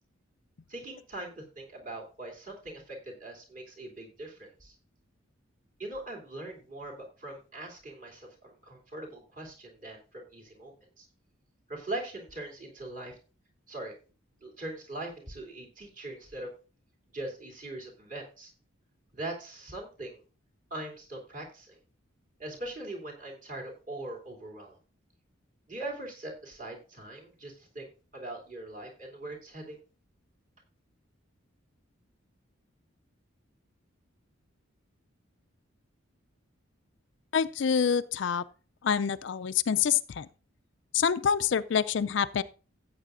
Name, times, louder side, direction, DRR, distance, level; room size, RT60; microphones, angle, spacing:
voice 1, 0.7-4.7 5.8-11.1 11.7-13.2 13.7-13.9 14.4-16.5 17.1-18.5 19.1-20.2 20.7-21.8 22.4-24.8 25.7-29.8, right 2 dB, 40° right, 2.8 m, -41 dB
voice 2, 37.3-38.4 38.8-40.3 40.9-42.4, left 7 dB, 60° left, 0.4 m, -26 dB
16.0 x 8.3 x 2.5 m
head